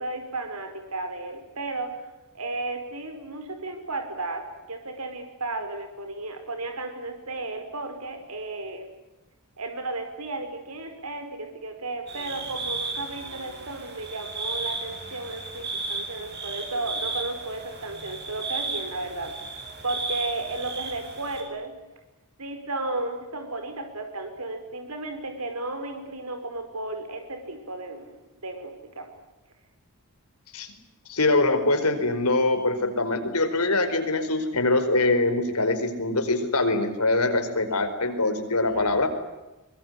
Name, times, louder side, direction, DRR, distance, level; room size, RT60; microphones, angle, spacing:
voice 1, 0.0-2.1 2.3-4.4 4.7-8.9 9.6-21.7 22.4-28.1 28.4-29.1 38.7-39.1, right 2 dB, 85° right, 6 dB, 5.5 m, -34 dB
sound 1, 12.1-21.4, right 3 dB, 50° right, 7.5 m, -34 dB
voice 2, 31.1-39.1, left 2 dB, 85° left, 7 dB, 4.8 m, -23 dB
24.5 x 23.0 x 9.7 m, 1.0 s
head